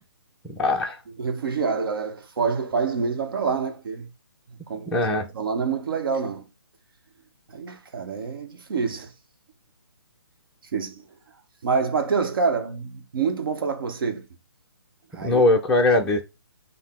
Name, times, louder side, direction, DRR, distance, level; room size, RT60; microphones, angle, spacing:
voice 1, 0.4-1.0 4.9-5.3 15.2-16.2, left 2 dB, 5° left, 0.5 m, -21 dB
voice 2, 1.2-4.1 4.5-5.1 5.3-6.5 7.5-9.1 10.7-11.0 11.6-14.3 15.1-15.4, right 5 dB, 60° right, 1.0 m, -27 dB
5.4 x 2.1 x 3.5 m
figure-of-eight pair, 145°, 14 cm